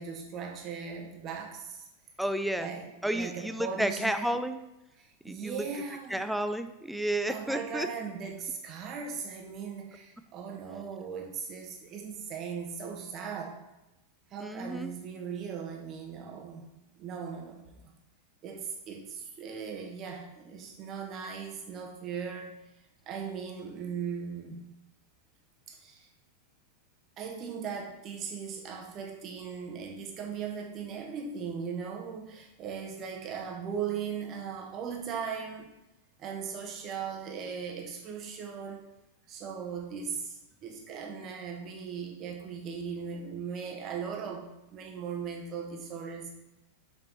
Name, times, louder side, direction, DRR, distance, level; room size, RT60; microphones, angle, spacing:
voice 1, 0.0-1.9 2.6-4.3 5.0-6.3 7.3-13.6 14.3-16.7 17.0-17.9 18.4-22.6 23.1-24.6 25.7-26.1 27.2-35.7 36.2-38.8 39.3-46.3, right 6 dB, 35° right, 1 dB, 1.4 m, -38 dB
voice 2, 2.2-2.7 3.0-4.6 5.2-5.7 6.1-7.9 14.4-14.9, right 1 dB, ahead, 9 dB, 0.5 m, -31 dB
7.1 x 5.3 x 4.1 m, 0.95 s
figure-of-eight pair, 90°, 0 cm